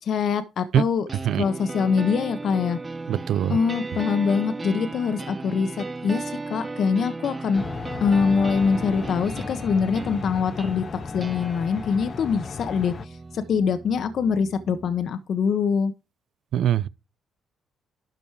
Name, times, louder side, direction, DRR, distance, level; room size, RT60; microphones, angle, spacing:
voice 1, 0.0-1.1 1.3-2.8 3.5-7.6 8.0-10.8 11.1-15.9, left 6 dB, 60° left, 1.3 m, -24 dB
sound 1, 1.1-15.1, right 3 dB, 25° right, 0.5 m, -36 dB
voice 2, 3.1-3.6 16.5-16.9, right 10 dB, 75° right, 0.7 m, -22 dB
sound 2, 7.5-13.1, left 5 dB, 45° left, 0.5 m, -35 dB
12.5 x 5.3 x 4.9 m
cardioid pair, 90°, 0 cm